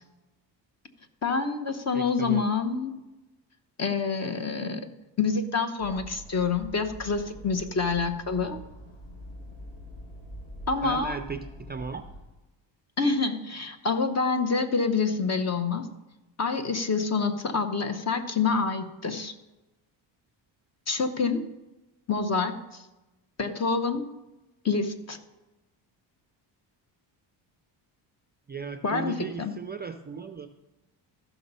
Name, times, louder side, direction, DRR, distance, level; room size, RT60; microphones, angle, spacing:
voice 1, 1.2-3.0 3.8-4.9 5.2-8.6 10.7-11.2 13.0-15.9 16.4-19.3 20.9-21.5 22.1-22.8 23.4-24.1 24.6-25.2 28.8-29.5, left 4 dB, 35° left, 8 dB, 0.9 m, -27 dB
voice 2, 1.9-2.4 10.8-12.1 28.5-30.5, right 5 dB, 25° right, 7 dB, 0.4 m, -36 dB
sound 1, 5.8-12.2, equal, 90° left, 3.5 m, -44 dB
13.5 x 6.0 x 5.5 m, 1.0 s
cardioid pair, 120°, 46 cm